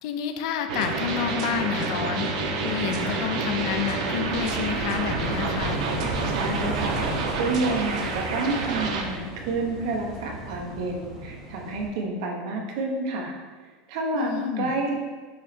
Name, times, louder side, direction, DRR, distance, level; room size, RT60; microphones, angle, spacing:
voice 1, 0.0-2.3 2.6-5.8 14.1-14.7, left 8 dB, 60° left, 7 dB, 0.5 m, -29 dB
sound 1, 0.7-9.0, right 3 dB, 85° right, 0.9 m, -28 dB
Wind / Waves surf, 1.9-11.9, equal, 5° right, 1.7 m, -37 dB
voice 2, 6.2-7.1 7.4-13.3 13.9-14.9, right 3 dB, 60° right, 1 dB, 1.0 m, -29 dB
6.9 x 3.1 x 4.4 m, 1.4 s
supercardioid pair, 180°, 4 cm